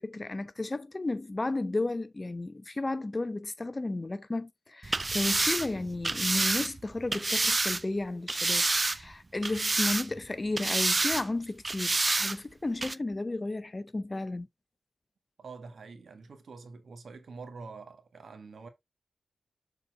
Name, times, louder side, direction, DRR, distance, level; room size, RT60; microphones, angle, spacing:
voice 1, 0.0-14.5, left 2 dB, 30° left, 0.7 m, -33 dB
sound 1, 4.8-7.8 8.3-9.1 9.4-10.3 10.6-11.2 11.6-12.4 12.8-12.9, right 2 dB, 30° right, 0.4 m, -28 dB
voice 2, 15.4-18.7, right 4 dB, 75° right, 1.7 m, -46 dB
6.9 x 4.3 x 3.7 m
wide cardioid pair, 80°, 0 cm